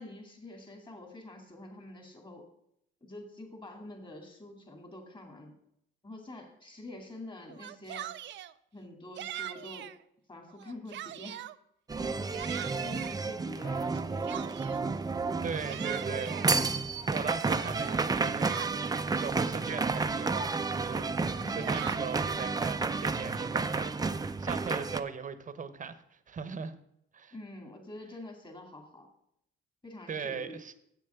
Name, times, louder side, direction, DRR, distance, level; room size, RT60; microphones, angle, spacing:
voice 1, 0.0-2.5 3.0-5.5 6.0-8.2 8.7-9.9 10.3-11.4 12.0-14.4 16.4-16.8 21.3-21.7 27.3-29.1 29.8-30.6, left 1 dB, 25° left, 2.4 m, -46 dB
Yell, 7.5-8.5 9.2-10.0 10.5-11.6 12.0-13.2 13.9-14.9 15.4-16.5 17.0-19.1 19.7-19.8 20.1-20.6 21.3-22.4, right 12 dB, 65° right, 0.5 m, -42 dB
sound 1, 11.9-25.0, right 4 dB, 20° right, 0.5 m, -31 dB
voice 2, 15.4-16.5 17.1-21.2 21.5-26.7 27.1-27.3 30.1-30.7, right 6 dB, 40° right, 0.9 m, -39 dB
7.8 x 6.9 x 6.9 m
cardioid pair, 90°, 20 cm